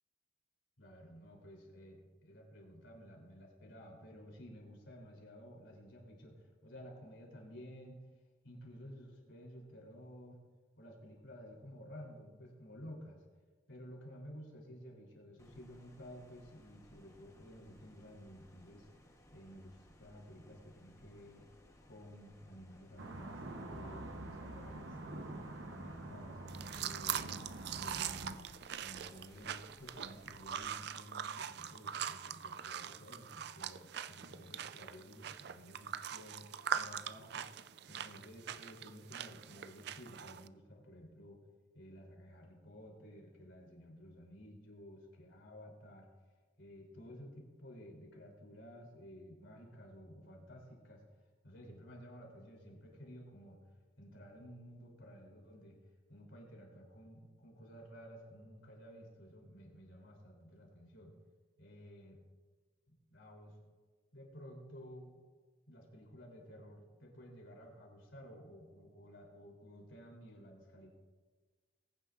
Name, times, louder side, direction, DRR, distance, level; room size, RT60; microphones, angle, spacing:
voice 1, 0.8-8.0 8.4-10.4 10.8-13.2 13.7-18.9 19.3-21.4 21.8-26.4 26.8-27.4 27.7-37.5 37.9-41.4 41.7-46.1 46.6-51.0 51.4-53.6 54.0-55.8 56.1-61.1 61.6-62.2 62.9-63.6 64.1-65.2 65.7-70.9, equal, 80° left, -1 dB, 3.3 m, -53 dB
sound 1, 15.4-30.8, left 1 dB, 15° left, 0.9 m, -63 dB
sound 2, 23.0-28.4, right 2 dB, 70° right, 0.9 m, -46 dB
sound 3, 26.5-40.5, right 8 dB, 55° right, 0.4 m, -42 dB
20.5 x 9.7 x 2.5 m, 1.4 s
head